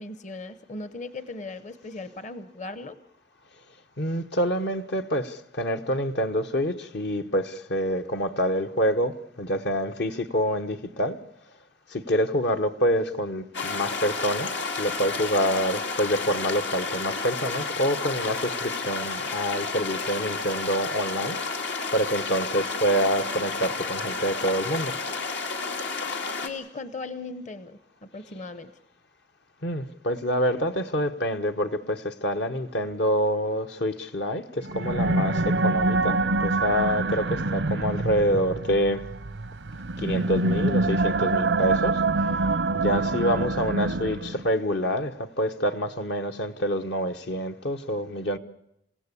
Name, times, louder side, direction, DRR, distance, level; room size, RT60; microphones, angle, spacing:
voice 1, 0.0-3.0 26.4-28.7, left 3 dB, 45° left, 13 dB, 1.0 m, -38 dB
voice 2, 4.0-11.2 11.9-21.4 21.9-24.9 29.6-39.0 40.0-42.0 42.7-48.4, equal, 65° left, 7 dB, 1.1 m, -27 dB
sound 1, 13.5-26.5, left 4 dB, 85° left, 2.3 m, -31 dB
sound 2, 34.6-44.5, right 2 dB, 90° right, 0.8 m, -25 dB
27.5 x 16.5 x 8.4 m, 0.80 s
head